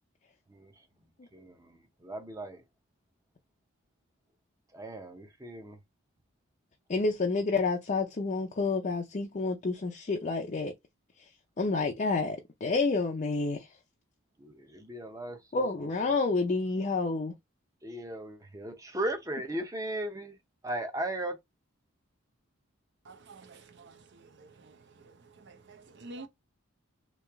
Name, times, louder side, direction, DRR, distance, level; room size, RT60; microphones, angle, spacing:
voice 1, 1.3-2.6 4.7-5.8 14.4-15.4 17.8-20.3 20.6-21.4, right 1 dB, 15° right, 0.7 m, -37 dB
voice 2, 6.9-10.7 11.6-13.7 15.5-17.3, left 3 dB, 35° left, 0.5 m, -29 dB
voice 3, 23.1-24.8 25.0-26.3, right 2 dB, 55° right, 0.6 m, -50 dB
3.1 x 2.8 x 3.4 m
head